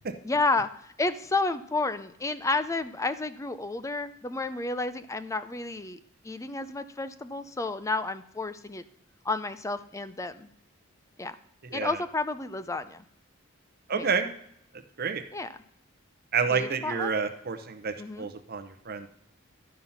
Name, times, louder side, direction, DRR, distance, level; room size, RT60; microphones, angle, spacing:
voice 1, 0.2-6.0 6.2-8.8 9.2-10.5 11.2-11.4 11.7-13.0 13.9-14.1 15.3-15.6 16.5-17.1 18.0-18.3, left 3 dB, 15° left, 13 dB, 0.4 m, -31 dB
voice 2, 13.9-14.3 15.0-15.2 16.3-19.1, right 5 dB, 50° right, 7 dB, 0.8 m, -29 dB
11.5 x 5.6 x 5.8 m, 0.70 s
head